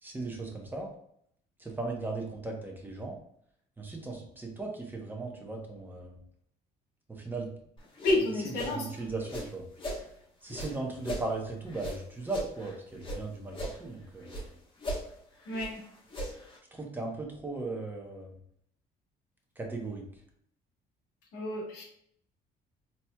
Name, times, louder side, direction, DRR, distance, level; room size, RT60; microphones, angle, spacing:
voice 1, 0.0-0.9 1.6-3.2 3.8-6.2 7.1-7.5 8.7-9.7 10.4-14.5 16.7-18.4 19.6-20.1, right 3 dB, 10° right, 1 dB, 0.9 m, -37 dB
sound 1, 7.8-10.1 10.5-13.2 13.5-14.5 14.8-16.6, equal, 30° left, 1.1 m, -39 dB
voice 2, 8.0-8.9 15.5-15.8 21.3-21.8, left 2 dB, 80° left, -1 dB, 1.3 m, -30 dB
4.1 x 2.9 x 2.2 m, 0.68 s
cardioid pair, 110°, 17 cm